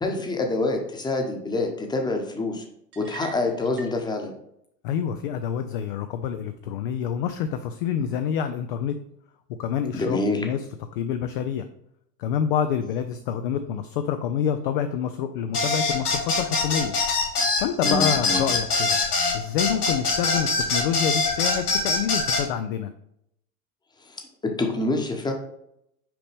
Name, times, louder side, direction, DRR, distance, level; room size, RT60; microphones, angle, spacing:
voice 1, 0.0-2.6 3.0-4.3 9.9-10.5 17.8-18.4 24.0-24.2 24.6-25.3, left 2 dB, 10° left, 3 dB, 1.0 m, -26 dB
sound 1, 2.9-4.0, right 5 dB, 25° right, 0.9 m, -42 dB
voice 2, 4.8-9.0 9.6-10.6 10.9-11.7 12.2-17.0 17.6-19.0 19.3-22.9, left 8 dB, 35° left, 8 dB, 0.4 m, -27 dB
sound 2, 15.5-22.4, left 3 dB, 75° left, 1.8 m, -23 dB
5.9 x 5.0 x 3.4 m, 0.75 s
figure-of-eight pair, 90°, 47 cm